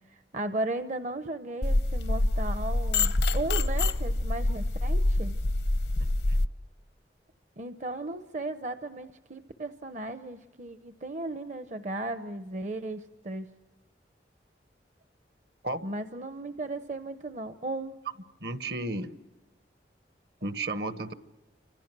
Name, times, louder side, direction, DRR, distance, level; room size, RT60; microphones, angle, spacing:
voice 1, 0.0-5.4 7.6-13.5 15.8-18.0, right 2 dB, 45° right, 10 dB, 0.8 m, -36 dB
sound 1, 1.6-6.5, left 2 dB, 80° left, 0.9 m, -26 dB
voice 2, 18.4-19.1 20.4-21.1, right 2 dB, 65° right, 12 dB, 1.2 m, -33 dB
29.0 x 26.0 x 6.1 m, 1.0 s
head